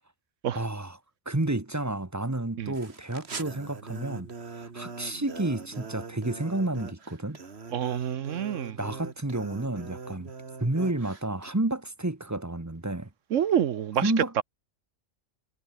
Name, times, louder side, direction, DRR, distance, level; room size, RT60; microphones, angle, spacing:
voice 1, 0.5-1.0 1.2-7.4 8.8-10.3 10.6-13.1 14.0-14.4, right 2 dB, 15° right, 1.4 m, -30 dB
sound 1, 2.7-11.5, right 4 dB, 55° right, 2.1 m, -42 dB
voice 2, 7.7-8.8 13.3-14.4, right 9 dB, 75° right, 1.2 m, -27 dB
omnidirectional pair, 1.3 m